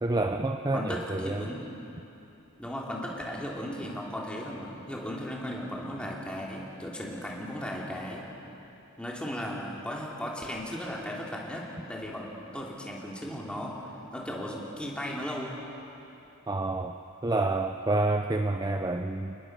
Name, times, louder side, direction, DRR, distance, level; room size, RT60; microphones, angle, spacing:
voice 1, 0.0-1.5 16.5-19.4, right 2 dB, 20° right, 6 dB, 0.5 m, -28 dB
voice 2, 0.7-1.6 2.6-8.3 9.0-15.6, equal, 5° left, -3 dB, 3.2 m, -36 dB
29.5 x 20.0 x 6.2 m, 3.0 s
head